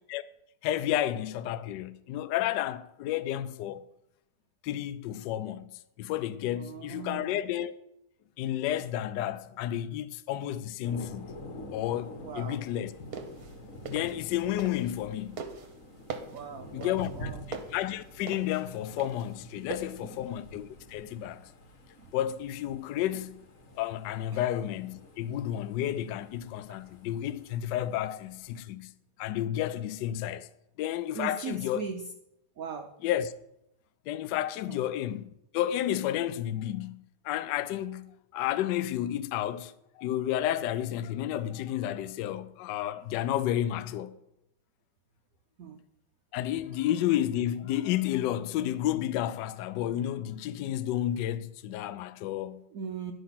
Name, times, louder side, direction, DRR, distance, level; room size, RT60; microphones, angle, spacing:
voice 1, 0.6-3.8 4.6-5.7 6.0-7.7 8.4-11.3 11.7-12.9 13.9-15.4 16.7-21.5 22.1-23.4 23.8-28.9 29.2-30.5 30.8-31.8 33.0-33.3 34.1-44.1 46.3-52.6, left 12 dB, 75° left, 1.0 m, -31 dB
voice 2, 6.5-7.4 12.2-12.6 16.3-17.4 20.0-20.2 22.0-22.1 24.3-24.5 31.1-32.0 32.6-32.9 34.7-34.8 45.6-45.8 52.7-53.1, right 6 dB, 75° right, 0.8 m, -39 dB
Thunder, 10.8-28.6, left 1 dB, 45° left, 1.3 m, -48 dB
sound 1, 12.9-15.1 15.4-20.0, right 5 dB, 55° right, 1.2 m, -41 dB
10.0 x 5.2 x 5.8 m
omnidirectional pair, 2.3 m